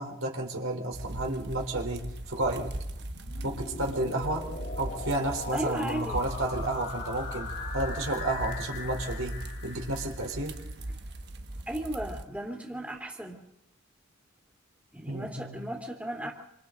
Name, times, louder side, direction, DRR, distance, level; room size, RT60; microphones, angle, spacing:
voice 1, 0.0-2.7 3.4-4.5 4.8-10.6 15.1-15.6, right 1 dB, 75° right, 2 dB, 4.0 m, -32 dB
sound 1, 0.9-12.2, right 1 dB, 50° right, 1.3 m, -39 dB
sound 2, 2.9-10.7, left 3 dB, 55° left, 3.3 m, -41 dB
voice 2, 5.5-6.3 11.7-13.4 14.9-16.3, right 1 dB, 5° right, 1 dB, 3.0 m, -35 dB
28.0 x 27.0 x 4.0 m, 0.83 s
head